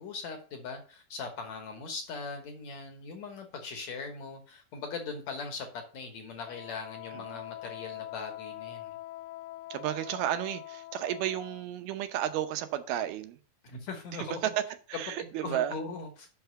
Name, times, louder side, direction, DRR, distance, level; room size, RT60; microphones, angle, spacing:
voice 1, 0.0-9.0 13.6-14.4 15.2-16.3, left 4 dB, 60° left, 2.0 m, -40 dB
Wind instrument woodwind instrument, 6.4-11.7, left 16 dB, 85° left, 2.3 m, -43 dB
voice 2, 9.7-13.4 14.1-15.8, right 12 dB, 90° right, 2.8 m, -33 dB
6.1 x 5.8 x 6.8 m
omnidirectional pair, 4.3 m